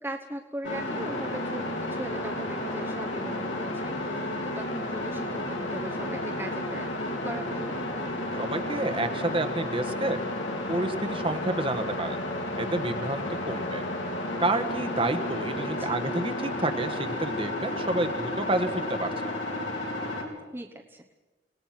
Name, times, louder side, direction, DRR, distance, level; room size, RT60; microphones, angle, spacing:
voice 1, 0.0-6.9 7.2-7.7 15.8-16.0 20.5-21.1, right 1 dB, 10° right, 1 dB, 1.1 m, -39 dB
sound 1, 0.6-20.2, left 1 dB, 75° left, 4.3 m, -32 dB
voice 2, 8.3-10.2 10.7-12.2 12.6-13.8 14.4-19.3, right 2 dB, 30° right, 7 dB, 1.4 m, -29 dB
29.5 x 19.0 x 6.0 m, 1.2 s
head